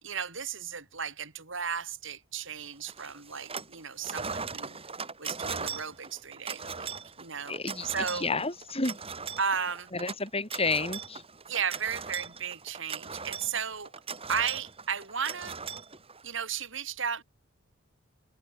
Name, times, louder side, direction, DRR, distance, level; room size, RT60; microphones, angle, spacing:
voice 1, 0.0-4.8 5.2-7.6 7.8-8.3 9.4-9.9 11.5-13.9 14.3-15.6 16.2-17.2, right 6 dB, 65° right, 4.1 m, -34 dB
sound 1, 2.9-3.8 4.0-16.4, right 5 dB, 30° right, 4.7 m, -39 dB
voice 2, 7.5-9.0 9.9-11.2, left 3 dB, 30° left, 5.6 m, -31 dB
head